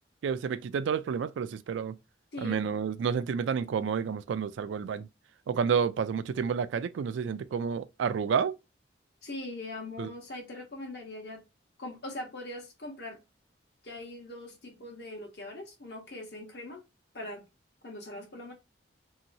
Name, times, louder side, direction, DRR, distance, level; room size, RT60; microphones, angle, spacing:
voice 1, 0.2-1.9 2.4-5.1 5.5-8.5 10.0-10.1, right 6 dB, 80° right, 0.3 m, -30 dB
voice 2, 2.3-2.8 9.2-11.4 11.8-13.2 13.8-16.8 17.1-17.4 17.8-18.5, left 2 dB, 60° left, 1.0 m, -41 dB
3.0 x 2.8 x 2.6 m
head